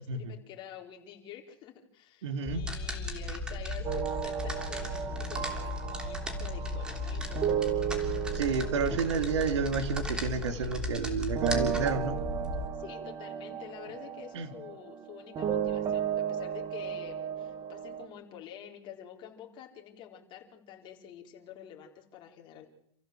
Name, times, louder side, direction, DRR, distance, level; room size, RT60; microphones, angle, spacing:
voice 1, 0.0-7.5 12.7-22.6, left 9 dB, 30° left, 1 dB, 4.4 m, -48 dB
voice 2, 2.2-2.6 8.3-12.2 14.3-14.5, right 5 dB, 85° right, 9 dB, 3.3 m, -30 dB
sound 1, 2.4-12.7, left 1 dB, 5° right, 3.1 m, -35 dB
sound 2, 3.8-11.1 11.3-18.1, right 9 dB, 25° right, 1.8 m, -35 dB
28.5 x 15.0 x 7.9 m, 0.76 s
supercardioid pair, 150°, 15 cm